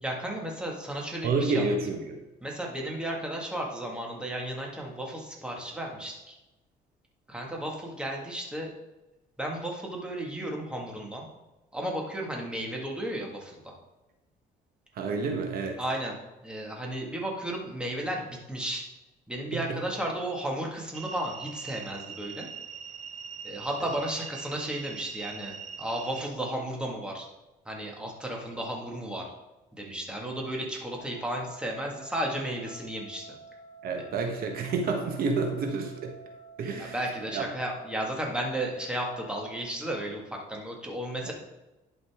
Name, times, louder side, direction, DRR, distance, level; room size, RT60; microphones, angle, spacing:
voice 1, 0.0-1.7 2.4-6.4 7.3-8.7 9.4-11.3 11.7-13.7 15.8-18.8 19.3-22.5 23.4-27.3 27.7-29.3 29.7-33.4 34.0-34.4 36.8-41.3, right 1 dB, 5° right, -1 dB, 1.8 m, -34 dB
voice 2, 1.2-2.2 14.9-15.8 19.5-19.8 33.8-36.1 36.6-36.9 37.3-37.4 41.2-41.3, right 4 dB, 65° right, 3 dB, 1.2 m, -29 dB
sound 1, 20.9-26.3, right 7 dB, 45° right, 0.6 m, -42 dB
sound 2, 30.9-39.6, right 2 dB, 40° left, 1.5 m, -50 dB
11.0 x 5.3 x 3.6 m, 0.99 s
cardioid pair, 110°, 17 cm